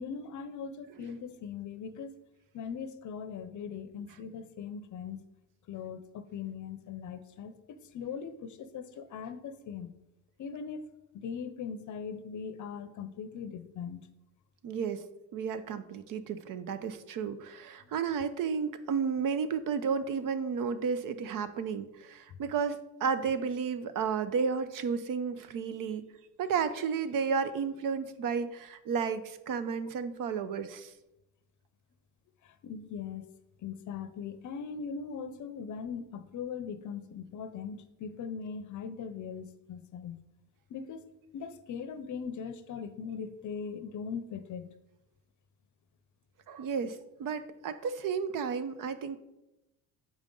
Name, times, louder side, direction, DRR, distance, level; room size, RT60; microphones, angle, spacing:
voice 1, 0.0-2.2 2.5-5.2 5.7-9.9 10.4-10.9 11.2-14.1 32.4-33.3 33.6-40.2 40.7-44.7, left 6 dB, 45° left, 11 dB, 0.7 m, -40 dB
voice 2, 14.6-15.1 15.3-26.0 26.4-30.9 46.5-49.2, right 6 dB, 50° right, 12 dB, 0.7 m, -32 dB
7.4 x 5.1 x 3.8 m, 0.94 s
supercardioid pair, 90°, 41 cm